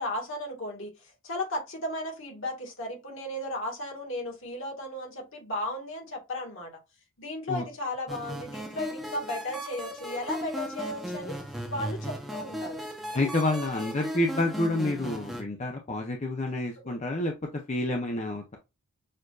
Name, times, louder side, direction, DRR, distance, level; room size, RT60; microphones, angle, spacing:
voice 1, 0.0-6.8 7.2-11.4 11.7-12.8 13.1-13.9 16.5-17.0, left 1 dB, 60° left, 1.8 m, -35 dB
sound 1, 8.1-15.4, equal, ahead, 0.8 m, -37 dB
voice 2, 13.1-17.3 17.7-18.6, left 2 dB, 30° left, 0.6 m, -28 dB
6.5 x 2.6 x 2.4 m
head